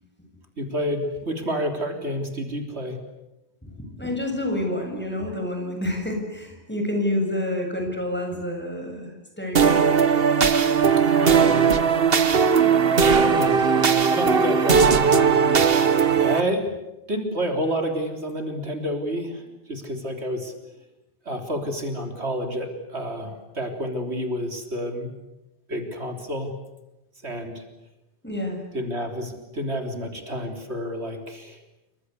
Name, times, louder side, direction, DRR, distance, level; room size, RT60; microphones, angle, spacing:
voice 1, 0.6-3.0 11.0-11.7 13.1-13.6 14.1-15.5 16.2-16.7 17.1-20.5 21.3-25.1 25.7-26.5 27.2-27.6 28.7-31.6, equal, 80° right, 4 dB, 4.0 m, -29 dB
voice 2, 3.6-9.8 12.6-13.8 16.1-16.3 28.2-28.6, left 1 dB, 10° left, 2 dB, 7.4 m, -29 dB
sound 1, 9.6-16.4, right 6 dB, 60° right, 1.5 m, -18 dB
28.0 x 25.0 x 8.3 m, 0.95 s
omnidirectional pair, 1.1 m